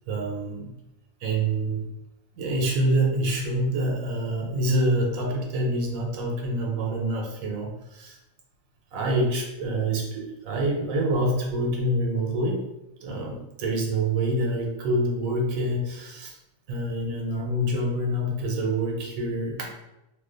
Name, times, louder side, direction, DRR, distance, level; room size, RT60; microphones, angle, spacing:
voice 1, 0.1-0.7 1.2-1.9 2.4-8.2 8.9-12.7 13.0-16.4 16.7-19.7, right 1 dB, 80° right, 0 dB, 1.2 m, -26 dB
2.7 x 2.2 x 3.8 m, 0.91 s
omnidirectional pair, 1.4 m